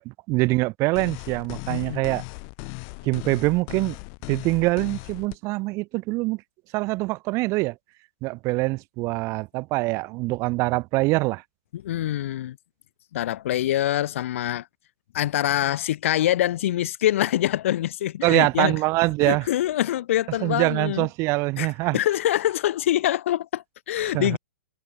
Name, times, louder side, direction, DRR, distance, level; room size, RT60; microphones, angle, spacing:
voice 1, 0.0-2.2 3.0-3.9 4.3-6.4 6.7-7.7 8.2-11.4 18.2-19.4 20.4-22.0 24.1-24.4, right 23 dB, 35° right, 3.3 m, -24 dB
sound 1, 1.0-5.4, left 40 dB or more, 40° left, 4.2 m, -37 dB
voice 2, 1.7-2.1 11.7-12.6 13.1-14.7 15.1-18.8 19.2-21.1 21.6-21.7 21.9-24.4, left 13 dB, 55° left, 4.3 m, -25 dB
figure-of-eight pair, 110°, 8 cm